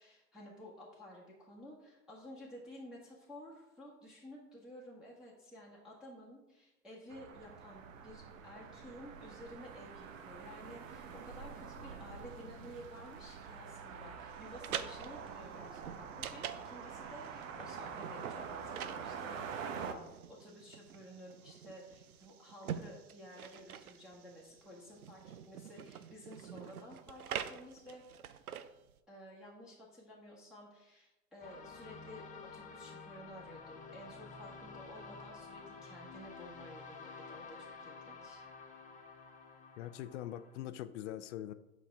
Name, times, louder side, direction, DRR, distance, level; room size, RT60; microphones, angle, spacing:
voice 1, 0.0-28.0 29.1-32.2 32.5-38.4, equal, ahead, -6 dB, 1.3 m, -53 dB
sound 1, 7.1-19.9, right 6 dB, 65° right, 1.0 m, -46 dB
sound 2, 14.4-29.0, right 9 dB, 85° right, 0.6 m, -46 dB
sound 3, 31.4-40.7, left 4 dB, 20° left, 0.9 m, -51 dB
voice 2, 39.8-41.5, left 12 dB, 60° left, 13 dB, 0.5 m, -42 dB
7.7 x 5.3 x 3.5 m, 0.96 s
hypercardioid pair, 105°, 42 cm